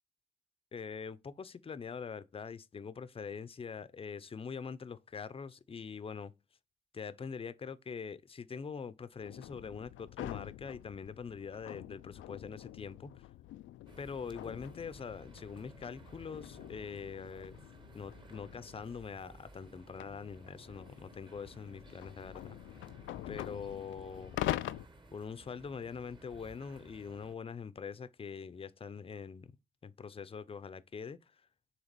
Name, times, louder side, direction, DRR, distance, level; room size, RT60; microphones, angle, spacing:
voice 1, 0.7-6.3 6.9-13.1 14.0-17.6 17.9-22.6 23.3-24.4 25.1-29.5 29.8-31.2, left 6 dB, 30° left, 0.6 m, -43 dB
sound 1, 9.2-18.9 19.6-24.9, left 14 dB, 80° left, 0.4 m, -44 dB
sound 2, 13.9-27.3, right 1 dB, 25° right, 1.2 m, -57 dB
7.1 x 3.5 x 5.2 m
cardioid pair, 90°, 20 cm